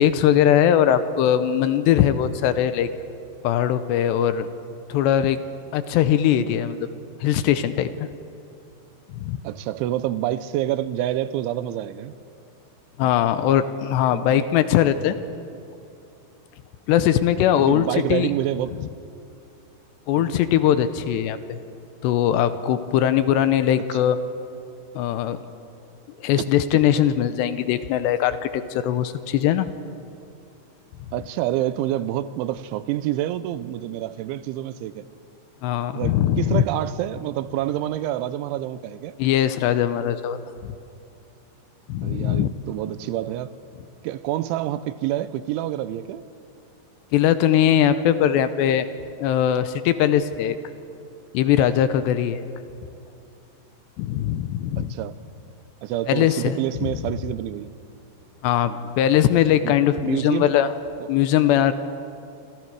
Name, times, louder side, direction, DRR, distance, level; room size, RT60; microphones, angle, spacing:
voice 1, 0.0-2.9 3.4-4.5 4.9-5.4 5.7-6.9 7.2-8.1 9.2-9.4 13.0-15.2 16.9-17.9 18.1-18.3 18.8-18.9 20.1-21.6 22.0-24.2 25.0-25.4 26.2-29.7 35.6-36.6 39.2-40.7 41.9-42.5 47.1-48.9 49.2-50.6 51.3-52.5 54.0-54.9 56.1-56.9 58.4-58.7 59.0-60.7 61.1-61.7, left 10 dB, 80° left, 11 dB, 2.8 m, -20 dB
voice 2, 9.4-12.1 14.1-14.5 17.7-18.9 20.1-20.4 23.9-24.0 31.1-35.0 35.9-39.1 42.0-43.5 44.0-46.2 54.8-55.2 55.8-57.7 58.7-58.9 59.6-59.7 60.0-60.5, right 13 dB, 90° right, 14 dB, 3.2 m, -27 dB
27.5 x 26.5 x 4.8 m, 2.7 s
omnidirectional pair, 5.3 m